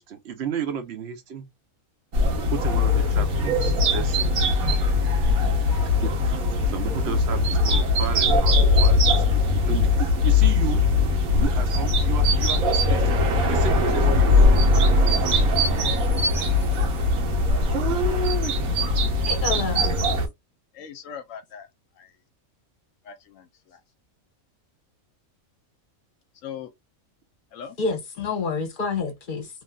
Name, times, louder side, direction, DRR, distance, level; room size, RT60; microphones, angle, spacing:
voice 1, 0.0-1.5 2.5-4.3 6.0-6.4 6.7-10.8 11.3-14.7 17.7-18.6 19.5-20.0, right 6 dB, 55° right, 0.9 m, -33 dB
sound 1, 2.1-20.3, left 2 dB, 80° right, 1.3 m, -20 dB
voice 2, 17.4-17.7 20.7-21.7 22.0-22.1 23.0-23.8 26.4-26.7 27.5-27.8, left 7 dB, 70° left, 0.9 m, -40 dB
voice 3, 19.3-19.9 27.8-29.5, left 4 dB, 40° left, 1.0 m, -28 dB
3.1 x 2.6 x 2.3 m
omnidirectional pair, 1.5 m